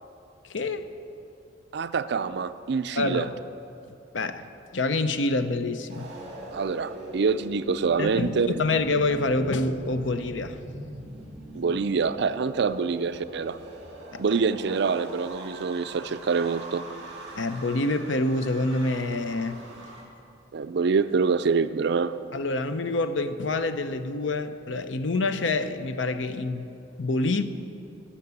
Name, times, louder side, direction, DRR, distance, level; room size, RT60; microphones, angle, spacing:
voice 1, 0.5-0.9 3.0-3.3 4.1-4.4 4.7-6.1 8.0-8.3 8.6-10.6 14.1-14.2 17.4-19.6 22.3-26.7 27.0-27.4, left 2 dB, 85° left, 11 dB, 0.7 m, -27 dB
voice 2, 1.7-3.3 6.5-8.5 11.5-13.6 14.2-16.9 20.5-22.1, right 5 dB, 65° right, 12 dB, 0.5 m, -25 dB
sound 1, 5.9-20.0, right 1 dB, 35° right, 2.7 m, -42 dB
12.5 x 7.2 x 9.5 m, 2.8 s
head